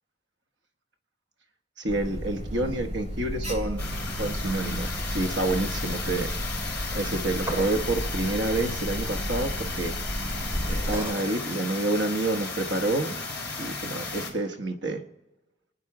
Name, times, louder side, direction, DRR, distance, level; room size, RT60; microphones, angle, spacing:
voice 1, 1.8-3.8 4.2-6.3 6.9-9.9 10.6-13.2 13.6-15.0, right 2 dB, 85° right, 6 dB, 1.2 m, -28 dB
Alarm, 1.9-11.0, equal, 40° right, 2.9 m, -33 dB
sound 1, 3.8-14.3, left 3 dB, 10° left, 4.4 m, -34 dB
sound 2, 7.4-7.9 10.9-11.3, equal, 15° right, 2.1 m, -35 dB
28.0 x 10.0 x 4.9 m, 1.0 s
head